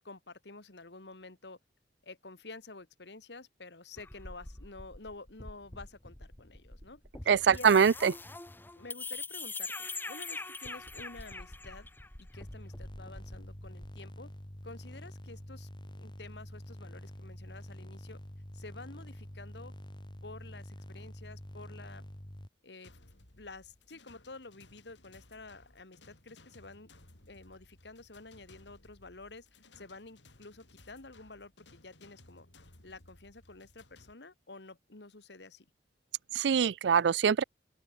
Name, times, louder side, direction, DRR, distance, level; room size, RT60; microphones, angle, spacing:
voice 1, 0.0-1.6 2.0-7.8 8.8-11.9 12.2-14.3 14.6-15.7 16.0-18.2 18.5-19.7 20.2-22.1 22.6-23.0 23.3-26.9 27.3-32.5 32.8-35.7, left 3 dB, 70° left, 2.0 m, -50 dB
sound 1, 4.0-14.0, left 3 dB, 10° left, 0.8 m, -44 dB
voice 2, 7.3-8.1 36.3-37.4, right 7 dB, 75° right, 0.4 m, -24 dB
sound 2, 12.3-22.5, equal, 25° left, 2.9 m, -47 dB
sound 3, 22.8-34.1, left 2 dB, 90° left, 4.2 m, -59 dB
open air
head